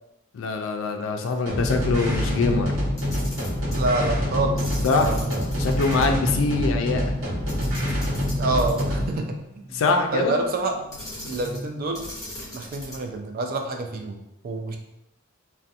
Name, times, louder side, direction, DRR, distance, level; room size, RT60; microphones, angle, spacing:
voice 1, 0.3-2.7 4.8-5.2 5.6-7.1 9.7-10.4, left 4 dB, 75° left, 5 dB, 0.3 m, -24 dB
sound 1, 1.5-9.2, left 1 dB, 85° right, 0.9 m, -26 dB
Camera, 3.0-3.8 4.6-6.1 6.4-6.5 7.5-9.1 10.9-11.7 11.9-13.1, left 1 dB, 15° left, 0.8 m, -39 dB
sound 2, 3.3-11.7, equal, 25° right, 0.8 m, -39 dB
voice 2, 3.7-5.4 8.4-9.4 10.1-10.8 11.2-12.1 12.5-14.8, right 2 dB, 45° right, 4 dB, 0.3 m, -27 dB
2.4 x 2.1 x 2.7 m, 0.88 s
head